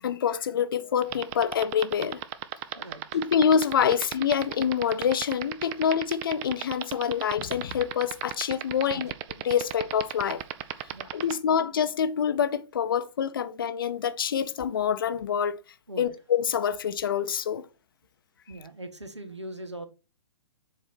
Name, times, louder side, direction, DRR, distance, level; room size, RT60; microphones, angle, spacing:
voice 1, 0.0-2.2 3.1-9.1 9.4-10.4 11.1-15.6 16.0-17.6, left 7 dB, 50° left, 0.7 m, -26 dB
sound 1, 1.0-11.3, right 16 dB, 25° right, 0.5 m, -33 dB
voice 2, 2.7-3.2 8.9-9.0 10.9-11.4 15.9-16.2 17.4-17.5 18.5-19.9, right 1 dB, 80° right, 1.5 m, -41 dB
7.3 x 4.8 x 4.2 m
figure-of-eight pair, 120°, 15 cm